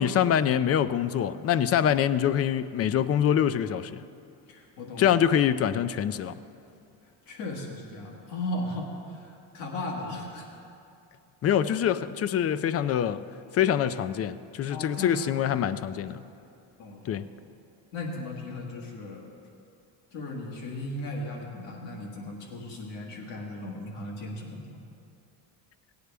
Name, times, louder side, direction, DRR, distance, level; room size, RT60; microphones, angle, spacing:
voice 1, 0.0-4.0 5.0-6.3 11.4-13.3 13.5-16.2 17.1-17.2, left 9 dB, 35° left, 14 dB, 0.4 m, -25 dB
voice 2, 4.5-5.2 7.3-10.5 14.7-16.3 16.8-17.3 17.9-19.3 20.1-24.7, left 1 dB, 85° left, -1 dB, 1.9 m, -37 dB
17.0 x 9.5 x 3.4 m, 2.7 s
supercardioid pair, 85°, 50 cm